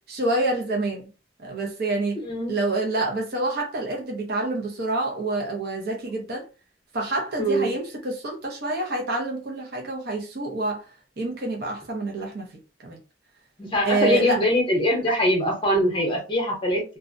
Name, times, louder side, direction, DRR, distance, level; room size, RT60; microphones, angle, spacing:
voice 1, 0.1-1.1 1.4-2.2 2.5-6.5 6.9-10.9 11.2-12.5 12.8-13.0 13.8-14.4, right 2 dB, 55° right, 0.6 m, -27 dB
voice 2, 2.2-2.5 7.4-7.7 13.6-16.8, equal, 30° left, 0.7 m, -23 dB
2.3 x 2.1 x 2.5 m
head